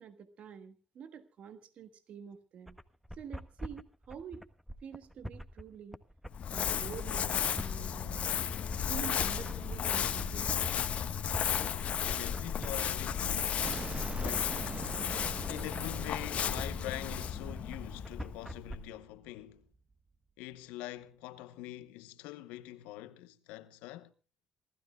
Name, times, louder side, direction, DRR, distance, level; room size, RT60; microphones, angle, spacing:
voice 1, 0.0-2.8 3.2-4.4 4.8-6.0 6.5-8.4 8.8-10.6, right 7 dB, 65° right, 1.5 m, -47 dB
sound 1, 2.7-18.8, equal, ahead, 1.4 m, -44 dB
Crumpling crinkling, 6.3-18.8, left 8 dB, 65° left, 1.2 m, -34 dB
voice 2, 12.0-13.7 14.2-14.8 15.5-19.7 20.4-24.1, left 15 dB, 85° left, 0.9 m, -44 dB
sound 2, 13.6-19.4, right 4 dB, 40° right, 1.1 m, -44 dB
27.5 x 13.0 x 2.3 m
hypercardioid pair, 45°, 2 cm